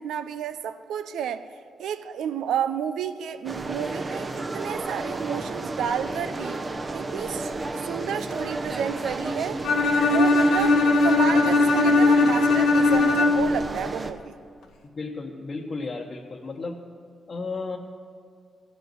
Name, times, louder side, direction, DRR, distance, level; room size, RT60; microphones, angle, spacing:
voice 1, 0.0-1.4 1.8-6.6 6.9-7.5 7.8-9.6 10.0-14.4, right 8 dB, 85° right, 11 dB, 0.5 m, -31 dB
sound 1, 3.4-14.1, right 2 dB, 40° right, 1.0 m, -32 dB
Bowed string instrument, 9.6-13.6, left 3 dB, 85° left, 1.0 m, -19 dB
voice 2, 14.8-16.8 17.3-17.8, left 3 dB, 50° left, -2 dB, 1.1 m, -33 dB
16.0 x 5.3 x 9.3 m, 2.3 s
supercardioid pair, 55°, 0 cm